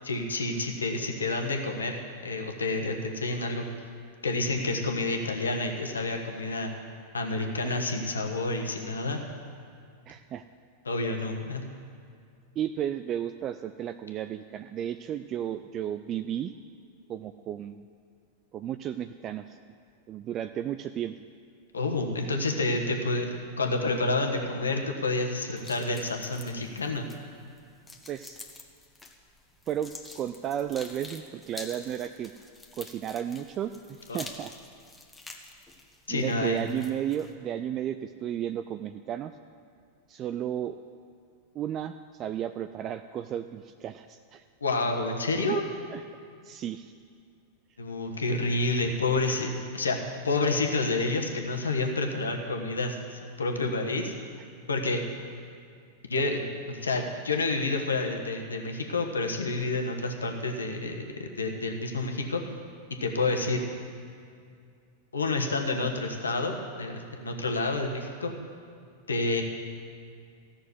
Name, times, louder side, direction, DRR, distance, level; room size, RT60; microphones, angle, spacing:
voice 1, 0.0-3.6 4.2-6.7 7.1-9.2 10.8-11.6 21.7-23.3 23.6-27.1 34.1-34.2 36.1-36.6 44.6-45.6 47.8-50.0 50.2-54.1 54.7-55.0 56.1-62.4 63.0-63.6 65.1-68.3 69.1-69.4, left 2 dB, 85° left, 3 dB, 1.3 m, -29 dB
voice 2, 10.1-10.4 12.6-16.5 17.1-17.8 18.5-19.6 20.1-21.2 28.1-28.4 29.7-32.3 32.8-34.5 36.1-39.3 40.1-40.8 41.5-44.4 45.5-45.6 45.9-46.0 46.4-46.9, right 10 dB, 35° right, 9 dB, 0.4 m, -33 dB
sound 1, 25.6-37.3, left 2 dB, 10° left, 1.3 m, -48 dB
14.5 x 6.4 x 8.1 m, 2.3 s
hypercardioid pair, 95°, 0 cm